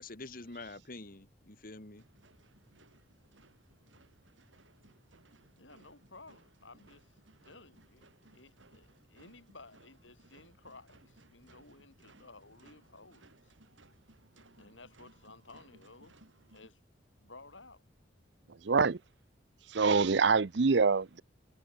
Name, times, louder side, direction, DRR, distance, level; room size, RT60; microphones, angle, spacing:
voice 1, 0.0-2.0, left 2 dB, 50° left, 2.2 m, -46 dB
sound 1, 2.0-16.7, right 2 dB, 85° right, 5.5 m, -63 dB
voice 2, 5.6-7.1 7.4-13.3 14.6-16.2 16.5-16.8 17.2-17.8, left 3 dB, 80° left, 7.2 m, -55 dB
voice 3, 18.6-19.0 19.7-21.2, right 4 dB, 65° right, 0.6 m, -25 dB
head